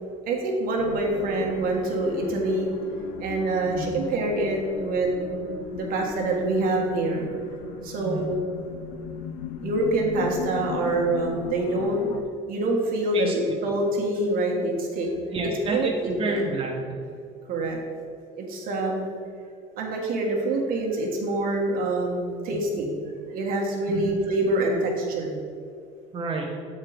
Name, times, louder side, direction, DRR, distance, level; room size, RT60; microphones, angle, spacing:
voice 1, 0.3-2.7 3.2-5.3 5.7-7.2 7.8-8.4 9.6-12.0 12.5-15.1 15.7-16.4 17.5-17.8 18.4-19.1 19.8-22.9 23.3-25.4, right 2 dB, 65° right, 0 dB, 1.5 m, -26 dB
sound 1, 0.8-12.2, left 7 dB, 80° left, 0.7 m, -37 dB
voice 2, 3.6-3.9 8.0-8.3 13.1-13.3 15.3-17.0 23.9-24.1 26.1-26.5, right 3 dB, 35° right, -1 dB, 1.0 m, -29 dB
7.3 x 4.5 x 5.0 m, 2.3 s
supercardioid pair, 100°, 16 cm